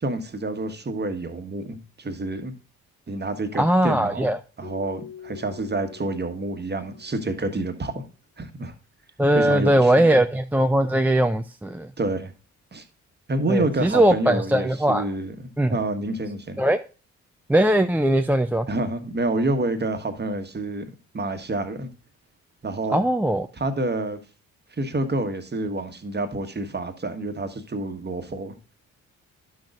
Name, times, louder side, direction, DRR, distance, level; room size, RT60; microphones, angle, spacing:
voice 1, 0.0-2.5 3.1-4.3 4.6-8.0 8.4-8.7 9.3-10.1 12.0-12.3 12.7-12.8 13.3-16.6 18.7-21.9 22.6-23.0 23.6-24.2 24.7-28.5, right 2 dB, 25° right, 1.3 m, -28 dB
voice 2, 3.6-4.4 9.2-11.9 13.5-15.1 15.6-15.8 16.6-16.8 17.5-18.7 22.9-23.5, right 1 dB, 5° right, 0.4 m, -20 dB
Keyboard (musical), 4.6-7.4, left 8 dB, 15° left, 3.3 m, -44 dB
11.5 x 6.3 x 2.5 m
figure-of-eight pair, 40°, 41 cm